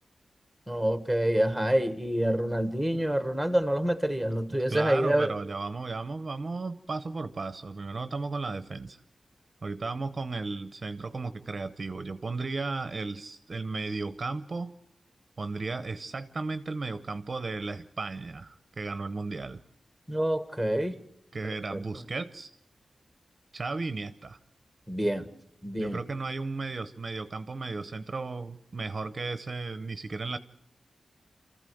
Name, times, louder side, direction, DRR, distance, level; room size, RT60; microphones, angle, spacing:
voice 1, 0.7-5.3 20.1-20.9 21.7-21.8 24.9-25.3 25.6-26.0, right 1 dB, 5° left, 11 dB, 1.4 m, -27 dB
voice 2, 4.7-9.0 9.6-14.7 15.4-19.6 21.3-22.5 23.5-24.4 25.8-30.4, right 3 dB, 40° right, 11 dB, 0.8 m, -35 dB
27.5 x 14.5 x 7.8 m, 0.73 s
wide cardioid pair, 155°, 0 cm